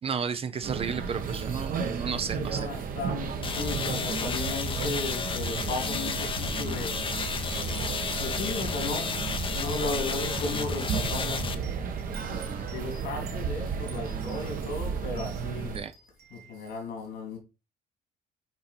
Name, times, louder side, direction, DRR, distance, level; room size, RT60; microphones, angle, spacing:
voice 1, 0.0-2.7 12.3-12.7 15.7-15.9, right 6 dB, 35° right, 0.6 m, -33 dB
sound 1, 0.6-15.8, right 6 dB, 55° right, 1.3 m, -33 dB
Wind chime, 1.5-2.7 3.0-3.2 3.8-4.6 4.8-5.2 5.9-6.0 6.7-7.1 7.3-16.8, right 6 dB, 70° right, 2.9 m, -53 dB
voice 2, 2.0-7.1 8.2-9.2 9.5-11.5 12.1-15.8 16.3-17.4, left 3 dB, 75° left, 2.8 m, -35 dB
sound 2, 3.4-11.5, left 5 dB, 30° left, 0.8 m, -32 dB
8.5 x 2.9 x 4.3 m
cardioid pair, 110°, 17 cm